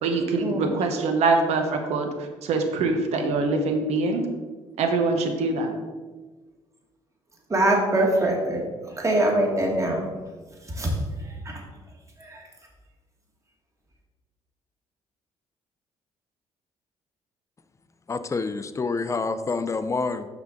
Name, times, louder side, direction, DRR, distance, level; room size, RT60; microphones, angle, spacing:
voice 1, 0.0-4.3 4.8-5.7, right 3 dB, 75° right, 5 dB, 0.9 m, -24 dB
voice 2, 7.5-8.6 9.0-10.1 10.8-10.9 11.5-11.6 12.2-12.4, right 1 dB, 25° right, 0 dB, 1.7 m, -23 dB
voice 3, 18.1-20.3, left 4 dB, 25° left, 11 dB, 0.5 m, -27 dB
6.1 x 5.4 x 3.8 m, 1.3 s
supercardioid pair, 75°, 11 cm